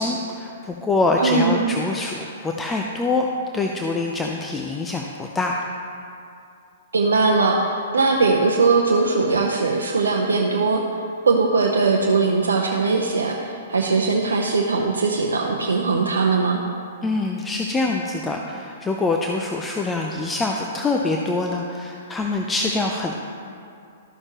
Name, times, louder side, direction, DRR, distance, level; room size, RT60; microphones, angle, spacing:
voice 1, 0.0-3.2 3.5-5.6 17.0-23.2, left 3 dB, 15° left, 1 dB, 0.5 m, -24 dB
voice 2, 1.2-1.6 6.9-10.8 11.3-16.6, right 4 dB, 80° right, 0 dB, 0.7 m, -20 dB
13.0 x 6.4 x 3.0 m, 2.4 s
hypercardioid pair, 120°, 0 cm